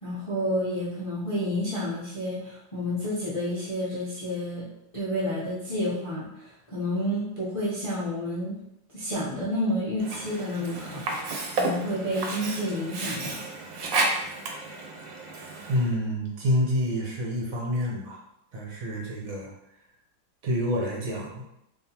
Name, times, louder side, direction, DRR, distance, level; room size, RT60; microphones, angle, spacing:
voice 1, 0.0-4.7 4.9-8.6 8.9-13.4, left 1 dB, 60° left, -9 dB, 0.3 m, -30 dB
Sink (filling or washing), 10.0-16.0, right 3 dB, 70° right, 1.3 m, -32 dB
voice 2, 15.7-18.2 18.5-19.5 20.4-21.4, equal, 55° right, -3 dB, 1.1 m, -28 dB
4.4 x 2.9 x 2.9 m, 0.81 s
omnidirectional pair, 2.2 m